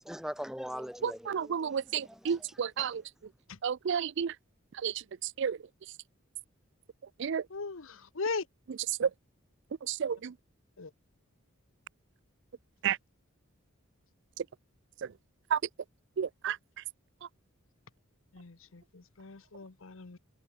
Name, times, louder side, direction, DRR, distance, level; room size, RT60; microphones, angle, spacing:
voice 1, 0.0-2.9, equal, ahead, 5.4 m, -42 dB
voice 2, 1.0-3.0 3.6-4.3 4.8-4.9 5.4-5.6 7.2-7.4 9.0-9.1 9.9-10.2 12.8-13.0 15.5-15.6 16.2-16.6, right 7 dB, 55° right, 0.4 m, -30 dB
voice 3, 7.5-8.5 10.8-10.9 18.3-20.2, left 4 dB, 65° left, 1.0 m, -38 dB
head